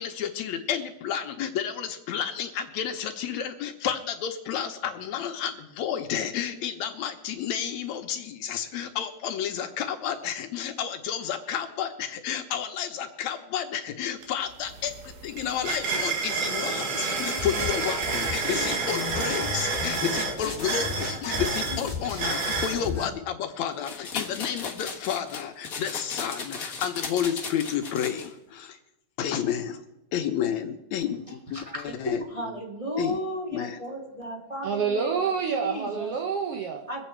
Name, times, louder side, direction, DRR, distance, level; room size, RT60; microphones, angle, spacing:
voice 1, 0.0-14.9 15.2-28.8 29.2-29.8 30.1-32.2 33.0-33.2 33.5-33.8, left 9 dB, 75° left, 2.0 m, -31 dB
sound 1, 14.2-14.3 14.6-22.8, right 5 dB, 90° right, 3.1 m, -30 dB
sound 2, 17.1-23.1, left 4 dB, 25° left, 1.4 m, -34 dB
sound 3, 23.8-28.3, left 5 dB, 45° left, 1.1 m, -36 dB
voice 2, 31.5-35.2 35.6-36.1 36.9-37.1, equal, 15° right, 1.5 m, -35 dB
voice 3, 34.6-36.8, right 6 dB, 65° right, 1.6 m, -27 dB
22.5 x 8.1 x 4.5 m
omnidirectional pair, 3.5 m